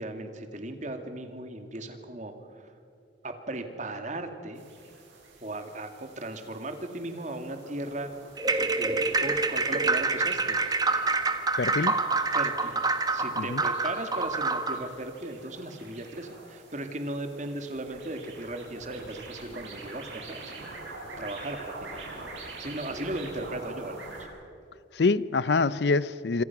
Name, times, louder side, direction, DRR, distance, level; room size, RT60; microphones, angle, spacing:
voice 1, 0.0-2.3 3.2-4.7 5.4-8.1 8.8-10.6 12.3-12.8 13.1-22.0 22.6-24.2, right 1 dB, 40° right, 6 dB, 2.3 m, -37 dB
sound 1, 4.5-24.2, right 2 dB, 85° right, 7.5 m, -46 dB
sound 2, 8.4-14.8, right 3 dB, 20° right, 1.4 m, -27 dB
voice 2, 11.6-12.0 13.4-13.6 24.9-26.4, left 4 dB, 65° left, 18 dB, 0.6 m, -25 dB
26.5 x 26.0 x 6.0 m, 2.7 s
head